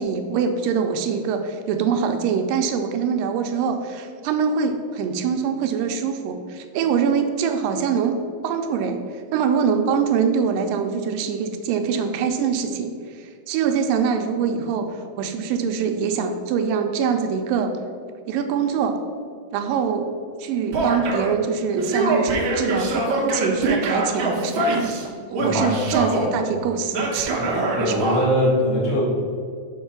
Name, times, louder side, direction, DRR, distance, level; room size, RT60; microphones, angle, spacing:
voice 1, 0.0-8.2 8.4-17.7 18.3-19.0 19.5-20.1 20.4-27.5 27.8-28.1, right 6 dB, 85° right, 6 dB, 2.3 m, -24 dB
Male speech man speaking / Yell, 20.7-21.3 21.7-25.0 25.3-26.3 26.9-28.2, right 2 dB, 65° right, 1.3 m, -23 dB
voice 2, 25.4-26.3 27.3-27.4 27.7-29.0, left 1 dB, 55° left, -5 dB, 0.7 m, -23 dB
5.6 x 5.5 x 5.9 m, 2.1 s
omnidirectional pair, 3.9 m